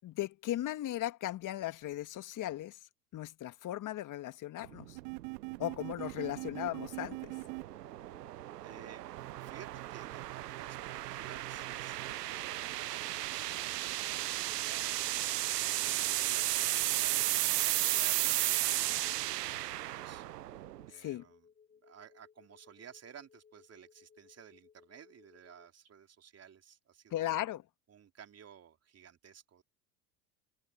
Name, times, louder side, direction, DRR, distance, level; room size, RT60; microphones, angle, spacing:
voice 1, 0.0-2.8 3.1-5.0 5.6-7.3 20.9-21.2 27.1-27.6, left 13 dB, 40° left, 1.9 m, -37 dB
sound 1, 4.6-20.9, right 15 dB, 85° right, 0.7 m, -35 dB
sound 2, 5.0-7.6 9.2-12.1, right 30 dB, 60° right, 3.2 m, -44 dB
sound 3, 6.7-25.7, left 7 dB, 15° left, 3.2 m, -64 dB
voice 2, 8.6-10.8 11.1-15.0 15.8-20.3 20.9-21.5 21.8-27.3 27.9-29.6, right 8 dB, 30° right, 3.6 m, -55 dB
hypercardioid pair, 80°, 47 cm